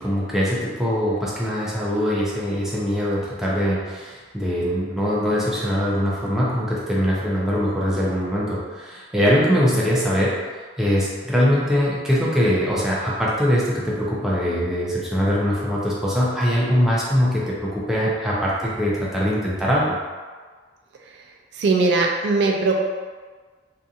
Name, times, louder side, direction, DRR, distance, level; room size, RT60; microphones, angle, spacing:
voice 1, 0.0-10.3 10.8-20.0, equal, 5° right, -7 dB, 0.5 m, -22 dB
voice 2, 21.5-22.7, right 3 dB, 65° right, 1 dB, 0.3 m, -20 dB
2.7 x 2.5 x 2.4 m, 1.5 s
head